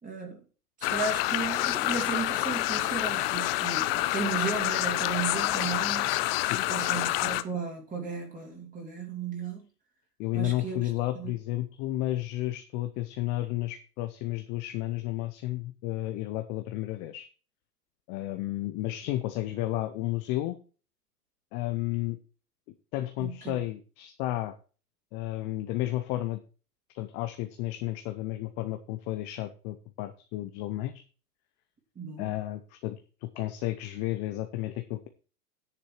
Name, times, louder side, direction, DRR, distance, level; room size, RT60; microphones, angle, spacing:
voice 1, 0.0-0.4 0.8-6.1 6.7-9.7 10.3-11.3 23.2-23.6 32.0-32.3, right 5 dB, 15° right, 2 dB, 2.8 m, -35 dB
sound 1, 0.8-7.4, left 17 dB, 40° left, 0.7 m, -28 dB
voice 2, 10.2-17.3 18.1-20.6 21.5-22.2 22.9-24.6 25.1-26.4 26.9-31.0 32.2-35.1, left 15 dB, 15° left, 8 dB, 0.3 m, -32 dB
10.0 x 6.7 x 4.7 m, 0.35 s
hypercardioid pair, 110°, 47 cm